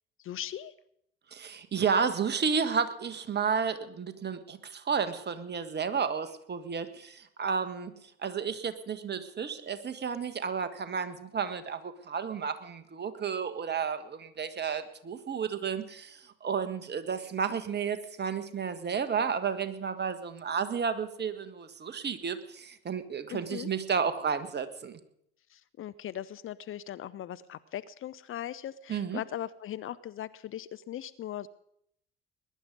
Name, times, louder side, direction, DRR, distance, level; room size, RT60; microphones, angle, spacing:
voice 1, 0.2-0.7 23.3-23.7 25.5-31.5, left 11 dB, 45° left, 15 dB, 0.7 m, -39 dB
voice 2, 1.3-7.9 8.2-25.0 28.9-29.2, right 6 dB, 35° right, 12 dB, 1.6 m, -32 dB
20.5 x 11.0 x 5.3 m, 0.74 s
hypercardioid pair, 55°, 30 cm